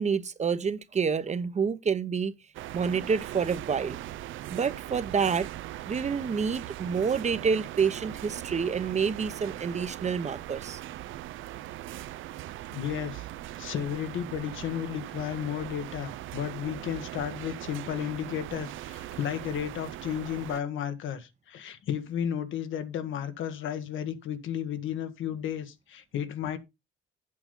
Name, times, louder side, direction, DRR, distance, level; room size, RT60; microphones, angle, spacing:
voice 1, 0.0-2.3 2.7-4.0 4.5-5.5 5.9-10.8, right 6 dB, 35° right, 0.9 m, -28 dB
sound 1, 2.5-20.6, right 14 dB, 80° right, 0.5 m, -40 dB
voice 2, 12.7-13.3 13.6-26.6, left 9 dB, 80° left, 1.5 m, -33 dB
8.6 x 5.7 x 5.3 m
cardioid pair, 90°, 20 cm